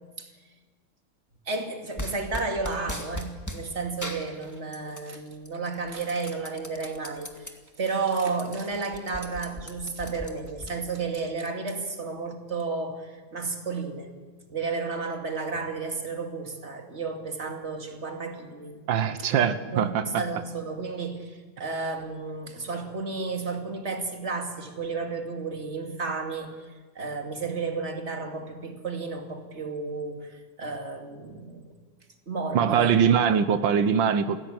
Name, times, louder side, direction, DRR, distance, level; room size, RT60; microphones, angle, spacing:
voice 1, 1.5-14.2 14.5-18.8 19.2-19.3 19.7-31.7 32.3-33.0, right 4 dB, 35° right, 4 dB, 2.6 m, -32 dB
sound 1, 2.0-3.6 4.0-5.1 5.5-7.5 8.0-8.1 8.3-10.7, left 1 dB, 10° left, 1.9 m, -38 dB
voice 2, 18.9-20.0 32.5-34.4, right 7 dB, 90° right, 11 dB, 1.8 m, -22 dB
29.0 x 16.5 x 8.8 m, 1.4 s
omnidirectional pair, 2.0 m